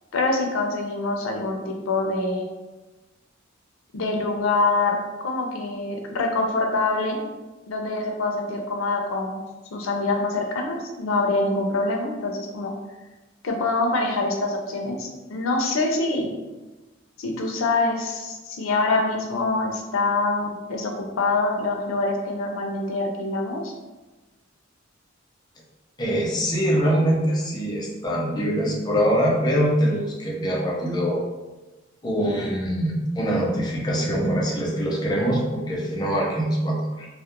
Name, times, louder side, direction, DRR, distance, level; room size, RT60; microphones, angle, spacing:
voice 1, 0.1-2.5 3.9-5.0 5.2-7.3 7.7-9.4 9.7-12.7 13.4-16.3 17.2-23.7, left 3 dB, 80° left, 2 dB, 0.5 m, -25 dB
voice 2, 26.0-31.2 32.0-37.1, equal, 20° left, -2 dB, 0.4 m, -23 dB
2.3 x 2.1 x 2.9 m, 1.1 s
head